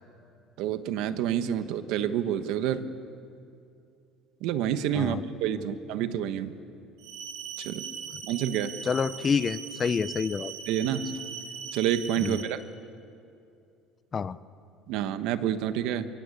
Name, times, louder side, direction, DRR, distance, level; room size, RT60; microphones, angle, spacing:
voice 1, 0.6-2.9 4.4-6.5 7.6-7.9 8.3-8.7 10.7-11.1 11.7-12.6 14.9-16.1, right 10 dB, 60° right, 10 dB, 1.3 m, -28 dB
sound 1, 7.0-12.4, right 7 dB, 80° right, 3.3 m, -40 dB
voice 2, 8.8-10.5 12.2-12.5 14.1-14.4, left 6 dB, 20° left, 16 dB, 0.5 m, -28 dB
25.0 x 23.5 x 8.5 m, 2.6 s
cardioid pair, 180°, 0 cm